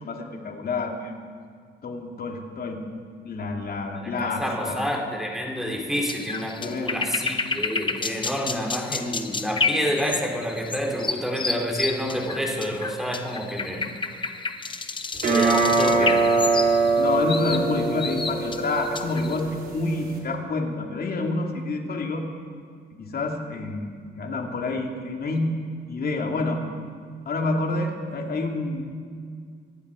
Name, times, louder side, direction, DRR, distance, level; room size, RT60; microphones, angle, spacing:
voice 1, 0.0-1.1 1.8-2.8 3.2-4.8 6.6-7.0 17.0-22.2 23.0-23.9 24.2-25.5 25.9-26.6 27.3-28.8, left 3 dB, 50° left, 2 dB, 2.5 m, -28 dB
voice 2, 3.9-13.8 15.3-16.2, equal, ahead, 0 dB, 3.3 m, -28 dB
sound 1, 6.1-19.4, left 4 dB, 25° left, 1.0 m, -30 dB
sound 2, 15.2-20.2, right 3 dB, 45° right, 3.6 m, -23 dB
25.0 x 11.0 x 5.0 m, 2.1 s
cardioid pair, 90°, 20 cm